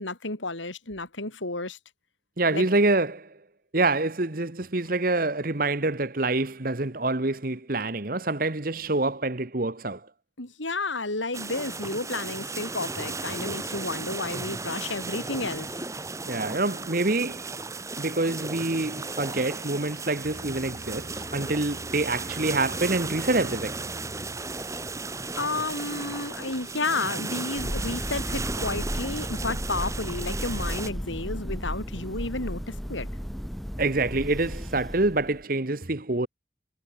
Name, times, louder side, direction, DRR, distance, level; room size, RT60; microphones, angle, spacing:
voice 1, 0.0-1.8 2.5-2.7 10.4-15.7 25.4-33.1, left 3 dB, 85° left, 4.8 m, -32 dB
voice 2, 2.4-3.3 3.7-10.0 16.3-17.5 18.0-23.8 33.8-36.3, right 2 dB, 50° right, 1.3 m, -26 dB
sound 1, 11.3-30.9, right 3 dB, 15° right, 1.2 m, -35 dB
sound 2, 20.2-27.2, right 1 dB, 85° right, 3.1 m, -47 dB
Thunder, 27.5-35.4, equal, ahead, 0.6 m, -34 dB
head